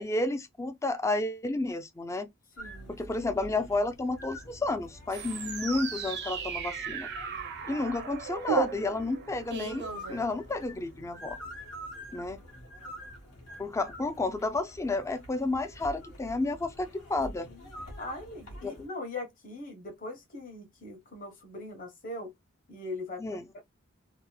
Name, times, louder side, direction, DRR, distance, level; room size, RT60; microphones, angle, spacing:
voice 1, 0.0-2.3 2.9-7.1 7.7-11.4 12.1-12.4 13.6-17.5 18.6-18.7 23.2-23.5, left 2 dB, 15° left, 0.3 m, -31 dB
sound 1, 2.6-18.9, equal, 90° left, 1.2 m, -46 dB
voice 2, 2.6-3.0 17.5-17.6 18.0-22.3 22.7-23.6, left 2 dB, 40° left, 1.0 m, -41 dB
sound 2, 5.1-10.8, right 6 dB, 50° right, 0.5 m, -36 dB
2.8 x 2.0 x 2.2 m
head